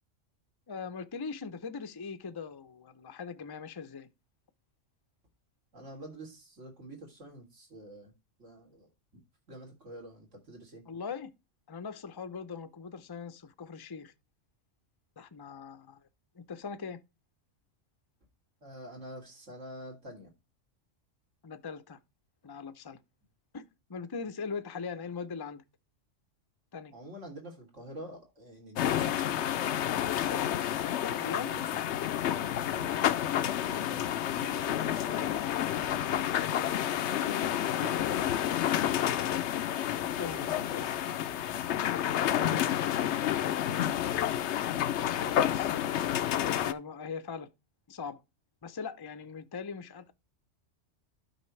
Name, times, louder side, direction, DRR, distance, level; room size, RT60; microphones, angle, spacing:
voice 1, 0.7-4.1 10.9-11.3 11.7-14.1 15.2-16.1 16.3-17.0 21.4-22.0 22.4-23.0 23.5-23.6 23.9-25.6 26.7-26.9 31.2-31.5 40.2-41.3 43.6-44.3 45.5-46.0 46.5-47.5 47.9-48.2 48.6-50.1, left 5 dB, 25° left, 0.6 m, -41 dB
voice 2, 5.7-8.1 8.4-8.9 9.5-10.8 18.6-20.3 26.9-29.7 30.7-31.8 32.2-38.5 40.4-41.0 42.3-42.8 45.2-45.6, right 1 dB, 80° right, 3.5 m, -47 dB
sound 1, 28.8-46.7, left 11 dB, 70° left, 0.9 m, -30 dB
12.0 x 5.7 x 3.2 m
omnidirectional pair, 1.3 m